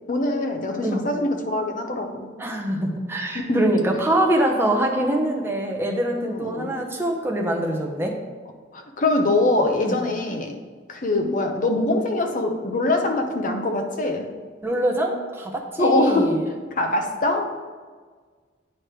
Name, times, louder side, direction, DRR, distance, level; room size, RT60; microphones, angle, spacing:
voice 1, 0.1-2.3 3.3-3.7 6.3-6.7 8.7-10.5 10.9-14.3 15.8-16.4 16.8-17.4, left 2 dB, 45° left, 4 dB, 0.7 m, -23 dB
voice 2, 2.4-8.2 9.8-10.0 14.6-16.4, right 1 dB, 15° right, 0 dB, 0.7 m, -24 dB
9.2 x 3.2 x 4.6 m, 1.5 s
head